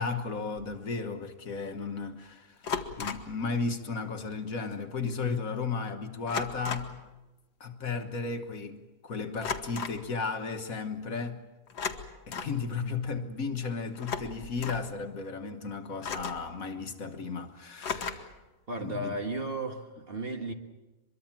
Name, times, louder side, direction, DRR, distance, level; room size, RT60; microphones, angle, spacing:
voice 1, 0.0-2.7 3.0-7.0 7.6-11.4 12.3-18.3 18.8-19.2, left 4 dB, 60° left, 1.7 m, -34 dB
sound 1, 0.6-0.7 2.6-3.4 4.7-4.8 5.1-5.3 6.3-7.0 9.4-10.0 11.7-12.6 13.9-14.9 16.0-16.5 17.8-18.4, left 6 dB, 85° left, 2.0 m, -36 dB
voice 2, 18.7-20.5, right 2 dB, 35° right, 1.7 m, -34 dB
24.0 x 23.0 x 7.4 m
omnidirectional pair, 1.7 m